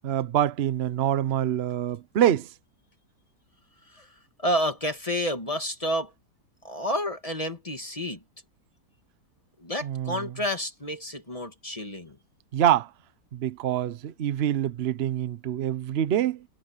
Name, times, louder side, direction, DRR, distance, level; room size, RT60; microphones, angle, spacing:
voice 1, 0.0-2.5 9.8-10.3 12.5-12.9 13.3-16.4, right 11 dB, 50° right, 0.8 m, -25 dB
voice 2, 4.4-6.1 6.6-8.2 9.6-12.1, equal, 20° left, 1.9 m, -30 dB
omnidirectional pair, 1.7 m